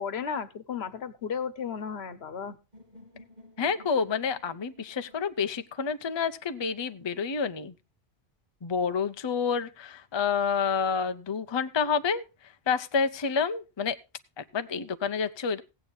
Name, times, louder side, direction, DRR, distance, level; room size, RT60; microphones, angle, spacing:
voice 1, 0.0-2.5, left 6 dB, 75° left, 14 dB, 1.2 m, -34 dB
sound 1, 2.7-6.7, left 1 dB, 45° right, 3.3 m, -55 dB
voice 2, 3.6-7.7 8.6-14.0 14.4-15.6, left 6 dB, 30° left, 10 dB, 0.6 m, -29 dB
16.0 x 9.1 x 3.8 m, 0.28 s
omnidirectional pair, 1.1 m